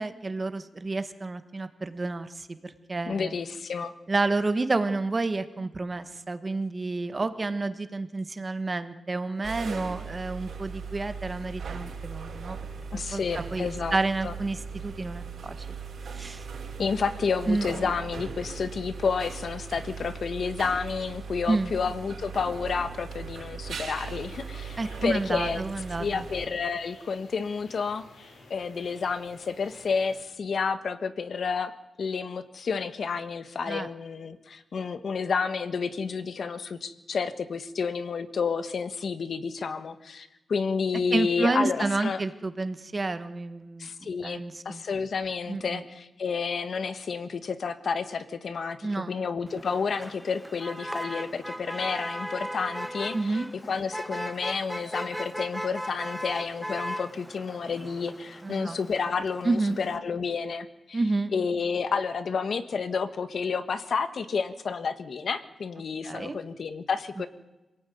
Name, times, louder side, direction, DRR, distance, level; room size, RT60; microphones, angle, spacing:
voice 1, 0.0-3.3 4.1-12.6 12.9-15.7 16.0-16.5 17.5-17.7 21.5-21.7 24.8-26.2 33.7-33.9 41.1-43.9 44.2-44.8 45.5-45.8 48.8-49.1 53.1-53.5 58.4-58.8 59.4-59.8 60.9-61.3 66.0-66.4, right 3 dB, 25° right, 10 dB, 1.3 m, -30 dB
voice 2, 3.0-3.9 12.9-14.0 14.2-14.3 16.8-25.6 26.0-28.0 28.5-31.7 32.0-42.2 43.8-53.4 53.7-61.0 61.3-67.3, left 5 dB, 50° left, 11 dB, 1.4 m, -30 dB
sound 1, 9.4-26.5, right 5 dB, 60° right, 5.5 m, -39 dB
sound 2, 23.9-30.2, left 2 dB, 80° left, 6.7 m, -52 dB
Motor vehicle (road), 49.5-60.0, equal, ahead, 0.8 m, -37 dB
26.5 x 18.0 x 9.4 m, 1.1 s
wide cardioid pair, 165°, 0 cm